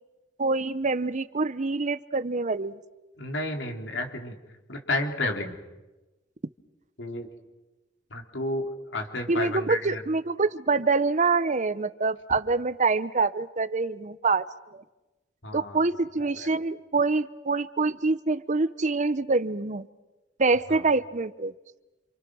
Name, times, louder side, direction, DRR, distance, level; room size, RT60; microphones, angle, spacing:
voice 1, 0.4-2.8 9.3-14.5 15.5-19.9 20.4-21.5, right 3 dB, 40° right, 15 dB, 0.8 m, -25 dB
voice 2, 3.2-4.4 4.7-5.6 7.0-7.3 8.1-10.0 15.4-15.9 16.2-16.5 20.7-20.8, left 2 dB, 75° left, 4 dB, 3.7 m, -31 dB
28.5 x 28.0 x 6.3 m, 1.1 s
head